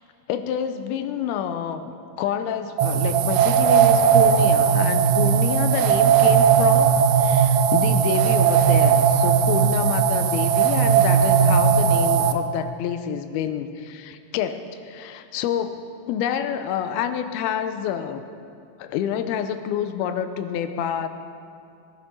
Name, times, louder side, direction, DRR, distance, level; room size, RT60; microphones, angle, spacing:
voice 1, 0.3-1.9 2.2-18.2 18.8-21.1, left 9 dB, 80° left, 10 dB, 2.5 m, -28 dB
sound 1, 2.8-12.3, right 7 dB, 75° right, 2.5 m, -18 dB
21.5 x 11.0 x 5.4 m, 2.4 s
omnidirectional pair, 4.6 m